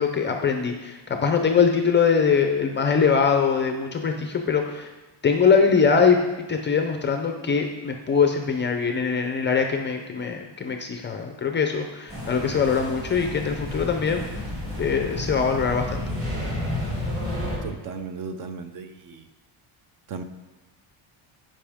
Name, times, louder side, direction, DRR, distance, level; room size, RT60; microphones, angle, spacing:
voice 1, 0.0-4.9 5.2-14.3 14.8-16.1, left 6 dB, 25° left, 4 dB, 0.4 m, -22 dB
sound 1, 12.1-17.6, left 1 dB, 25° right, 2.5 m, -31 dB
voice 2, 17.6-19.3 20.1-20.2, right 5 dB, 45° right, 8 dB, 0.6 m, -35 dB
13.5 x 5.4 x 3.5 m, 1.1 s
cardioid pair, 175°, 48 cm